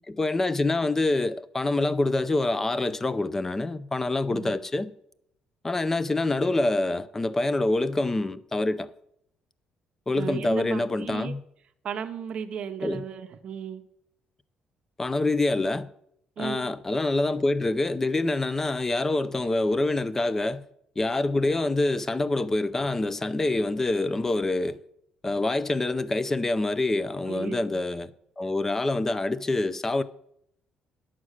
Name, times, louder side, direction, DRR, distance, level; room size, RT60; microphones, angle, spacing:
voice 1, 0.1-4.9 5.6-8.9 10.1-11.4 12.8-13.0 15.0-15.9 16.4-20.6 21.0-24.8 25.2-28.1 28.4-30.0, left 2 dB, 15° left, 0.5 m, -26 dB
voice 2, 4.3-4.6 10.2-11.3 11.8-13.8 16.4-16.7 27.2-27.8, right 7 dB, 50° right, 0.8 m, -35 dB
11.0 x 7.4 x 6.4 m
cardioid pair, 140°, 2 cm